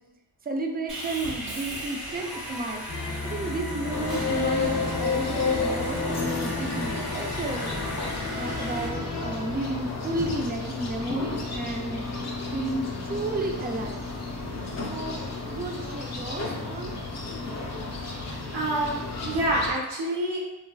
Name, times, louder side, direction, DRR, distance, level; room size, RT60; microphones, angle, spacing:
voice 1, 0.4-2.8 3.2-7.7 8.4-12.0 12.5-14.0 14.9-17.0, right 2 dB, 25° right, 3 dB, 0.4 m, -32 dB
Sawing, 0.9-8.9, equal, 45° right, 1.0 m, -37 dB
sound 1, 2.9-10.4, left 4 dB, 70° left, 0.9 m, -31 dB
sound 2, 3.9-19.7, left 3 dB, 40° left, 0.6 m, -34 dB
voice 2, 18.1-19.0 19.2-20.4, right 1 dB, 70° right, -4 dB, 0.9 m, -27 dB
2.9 x 2.5 x 2.2 m, 1.0 s
cardioid pair, 50°, 42 cm